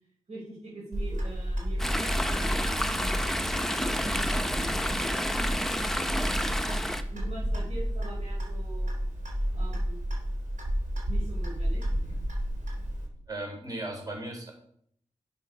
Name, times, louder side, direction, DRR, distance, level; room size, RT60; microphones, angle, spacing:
voice 1, 0.3-3.2 3.8-5.2 5.9-6.4 7.1-9.1 9.5-10.1 11.1-11.9, right 2 dB, 55° right, -6 dB, 3.8 m, -43 dB
Clock, 0.9-13.1, equal, 90° right, 3.4 m, -31 dB
Chatter / Stream, 1.8-7.0, equal, 5° left, 0.8 m, -30 dB
voice 2, 13.3-14.5, right 1 dB, 30° right, 1 dB, 4.0 m, -36 dB
11.5 x 6.9 x 5.3 m, 0.66 s
wide cardioid pair, 140°, 13 cm